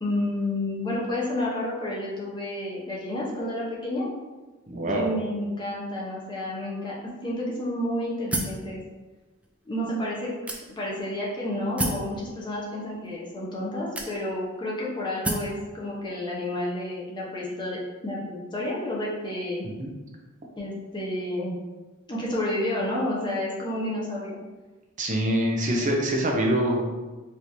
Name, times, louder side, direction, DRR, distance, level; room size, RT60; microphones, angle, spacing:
voice 1, 0.0-4.1 4.9-6.9 7.2-8.8 9.7-10.3 10.7-17.8 18.0-19.6 20.6-21.5 22.1-24.4, left 1 dB, 20° left, -5 dB, 0.8 m, -30 dB
voice 2, 4.7-5.0 19.8-19.9 25.0-26.8, right 1 dB, 40° right, 0 dB, 0.6 m, -24 dB
sound 1, 8.3-8.7 9.4-9.5 10.5-11.0 11.8-12.1 13.0-13.1 13.9-14.5 15.2-15.6, right 1 dB, 5° right, 0.3 m, -29 dB
4.4 x 3.0 x 2.6 m, 1.2 s
head